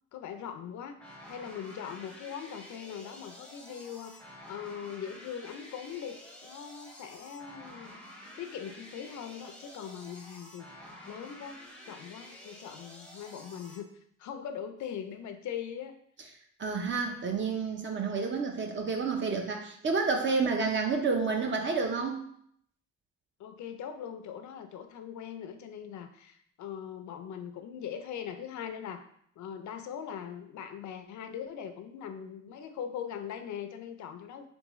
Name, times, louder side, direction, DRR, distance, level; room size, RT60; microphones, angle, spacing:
voice 1, 0.1-1.0 1.3-8.0 8.4-13.9 14.2-16.0 23.4-29.0 29.4-34.5, left 8 dB, 75° left, 8 dB, 0.5 m, -41 dB
sound 1, 1.0-13.8, left 1 dB, 5° left, 0.7 m, -50 dB
voice 2, 16.6-22.2, right 4 dB, 40° right, 3 dB, 0.6 m, -29 dB
3.5 x 3.5 x 3.0 m, 0.67 s
cardioid pair, 130°, 29 cm